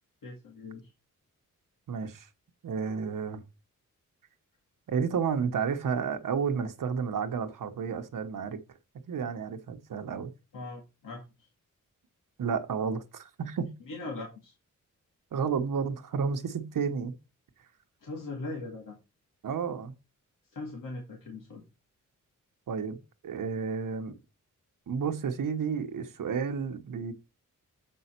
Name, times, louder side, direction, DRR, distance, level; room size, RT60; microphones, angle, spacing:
voice 1, 0.2-0.8 10.5-11.2 13.9-14.5 18.0-19.0 20.5-21.6, left 2 dB, 85° left, 2.2 m, -40 dB
voice 2, 1.9-2.3 2.6-3.4 4.9-8.6 9.1-10.3 12.4-13.7 15.3-17.1 19.4-19.9 22.7-23.0 23.2-24.1 24.9-27.1, right 6 dB, 90° right, 1.1 m, -31 dB
7.7 x 5.5 x 4.5 m
wide cardioid pair, 170°, 32 cm